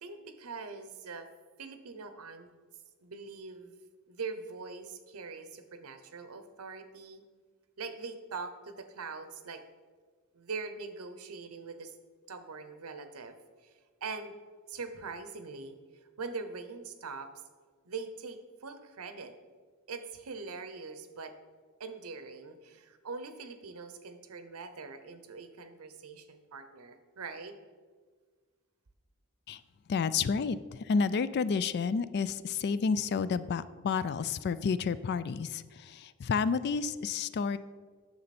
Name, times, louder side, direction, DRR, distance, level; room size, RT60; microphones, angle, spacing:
voice 1, 0.0-1.3 1.6-2.5 3.0-3.8 4.1-7.2 7.8-9.6 10.3-12.0 12.3-14.3 14.7-15.8 16.2-17.3 17.8-19.3 19.9-21.3 21.8-27.5, right 4 dB, 85° right, 9 dB, 0.8 m, -42 dB
voice 2, 29.9-37.6, left 5 dB, 50° left, 16 dB, 0.3 m, -30 dB
9.6 x 6.7 x 4.2 m, 1.5 s
head